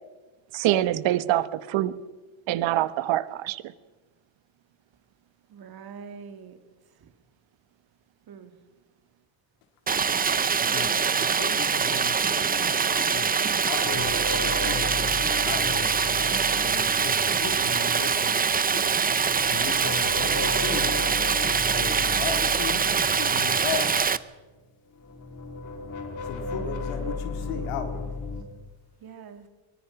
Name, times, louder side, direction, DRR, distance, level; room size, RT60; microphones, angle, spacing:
voice 1, 0.5-1.9 2.5-3.6, right 14 dB, 65° right, 15 dB, 1.3 m, -25 dB
voice 2, 5.5-6.6 6.9-7.1 8.3-8.5 29.0-29.5, right 6 dB, 50° right, 7 dB, 3.0 m, -44 dB
Stream, 9.9-24.2, right 6 dB, 20° right, 0.7 m, -24 dB
voice 3, 10.7-13.4 13.7-14.8 15.5-16.0 16.6-18.9 19.5-21.0 21.7-24.2 26.2-28.2, left 6 dB, 90° left, 5 dB, 4.0 m, -36 dB
sound 1, 13.8-18.0 18.8-24.6 24.9-28.4, left 3 dB, 35° left, 4.1 m, -35 dB
23.0 x 20.5 x 6.0 m, 1.2 s
cardioid pair, 125°, 49 cm